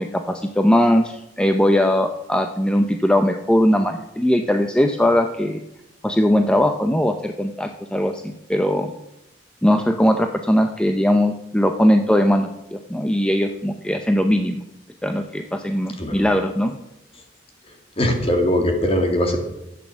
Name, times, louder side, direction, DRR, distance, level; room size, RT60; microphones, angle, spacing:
voice 1, 0.0-5.6 6.0-8.9 9.6-14.6 15.0-16.8, equal, 5° left, 6 dB, 0.6 m, -20 dB
voice 2, 18.0-19.4, left 1 dB, 35° left, 3 dB, 2.5 m, -20 dB
12.5 x 8.5 x 7.2 m, 0.88 s
head